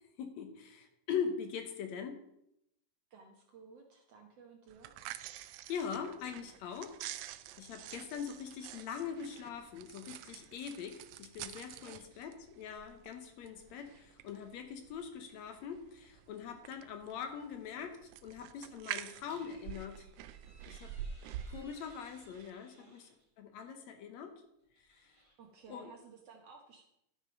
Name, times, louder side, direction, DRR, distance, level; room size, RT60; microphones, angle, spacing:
voice 1, 0.2-2.2 5.3-7.0 7.6-20.1 20.7-20.9 21.5-23.1 23.4-24.3 24.8-25.1 25.7-25.9, left 7 dB, 70° left, 6 dB, 1.9 m, -42 dB
voice 2, 3.1-5.0 11.8-12.2 22.8-23.0 25.4-26.9, right 4 dB, 65° right, 2 dB, 1.7 m, -56 dB
sound 1, 4.7-22.5, right 11 dB, 90° right, 1.6 m, -48 dB
sound 2, 19.2-23.3 24.6-25.8, right 1 dB, 15° right, 1.4 m, -64 dB
12.5 x 6.1 x 5.3 m, 0.80 s
omnidirectional pair, 3.9 m